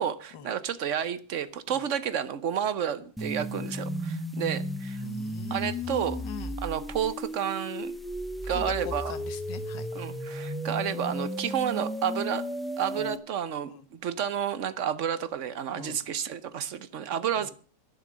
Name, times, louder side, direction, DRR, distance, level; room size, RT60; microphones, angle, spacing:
voice 1, 0.0-5.0 5.5-6.2 6.6-7.9 8.5-9.1 9.9-12.4 12.8-17.5, right 9 dB, 55° right, 1.0 m, -31 dB
sound 1, 3.2-13.2, equal, ahead, 0.6 m, -34 dB
voice 2, 5.0-6.6 8.5-10.1 13.0-13.1 13.7-13.8 15.7-16.0 17.4-17.5, left 9 dB, 85° left, 1.8 m, -41 dB
11.0 x 10.5 x 6.2 m
omnidirectional pair, 1.9 m